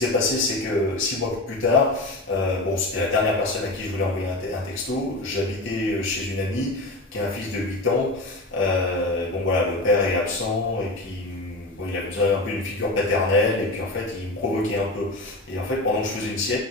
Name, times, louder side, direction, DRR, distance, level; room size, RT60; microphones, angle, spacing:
voice 1, 0.0-16.6, left 3 dB, 70° left, -5 dB, 2.4 m, -25 dB
10.5 x 3.6 x 6.3 m, 0.78 s
head